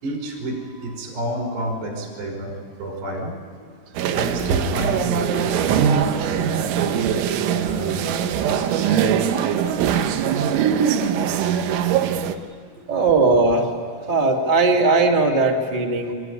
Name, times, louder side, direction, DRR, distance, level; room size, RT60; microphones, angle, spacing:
voice 1, 0.0-3.4 4.1-7.1 7.4-9.3 12.9-13.0, right 1 dB, 65° right, 2 dB, 7.1 m, -31 dB
sound 1, 4.0-12.4, right 8 dB, 90° right, 3.6 m, -21 dB
voice 2, 12.9-13.8 14.0-16.1, right 3 dB, 35° right, -1 dB, 0.7 m, -18 dB
24.0 x 23.5 x 9.7 m, 2.1 s
omnidirectional pair, 5.4 m